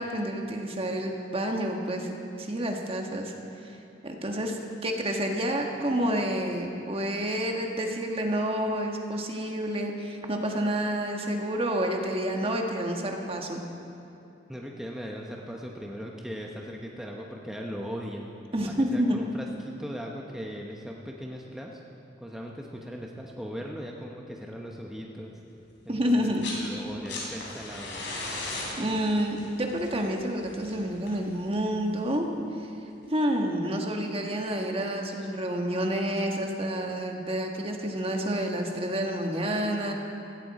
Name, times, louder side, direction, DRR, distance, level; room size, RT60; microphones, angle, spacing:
voice 1, 0.0-2.1 2.4-3.3 4.0-4.6 4.8-13.6 18.5-19.2 25.9-26.5 28.8-32.2 33.1-39.9, equal, 30° right, 2 dB, 1.5 m, -29 dB
voice 2, 14.5-18.3 18.7-21.8 22.2-25.4 25.8-28.1, equal, 5° right, -1 dB, 0.9 m, -39 dB
sound 1, 26.2-26.7 26.9-31.8 33.0-33.1, left 2 dB, 85° left, 3.6 m, -37 dB
17.0 x 16.0 x 4.2 m, 2.7 s
head